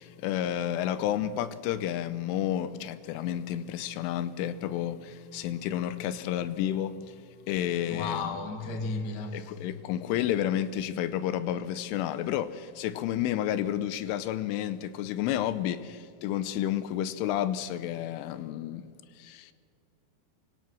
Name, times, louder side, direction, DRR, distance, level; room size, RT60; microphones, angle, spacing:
voice 1, 0.0-7.2 7.5-8.3 9.3-18.9 19.2-19.5, left 11 dB, 85° left, 3.4 m, -31 dB
voice 2, 7.9-9.6, left 3 dB, 55° left, 1.1 m, -34 dB
25.5 x 24.5 x 6.2 m
omnidirectional pair, 5.5 m